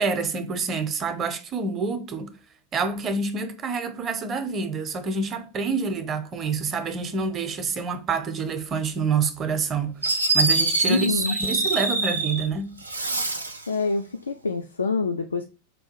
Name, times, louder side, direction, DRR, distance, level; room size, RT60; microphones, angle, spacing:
voice 1, 0.0-2.3 2.7-10.0 10.3-12.8, right 5 dB, 25° right, 0.7 m, -27 dB
Fireworks, 9.6-9.7 10.0-12.5 12.8-13.7, right 3 dB, 80° right, 0.4 m, -24 dB
voice 2, 10.9-11.4 13.7-15.4, left 4 dB, 75° left, 0.3 m, -26 dB
4.8 x 2.3 x 4.6 m
figure-of-eight pair, 90°, 0 cm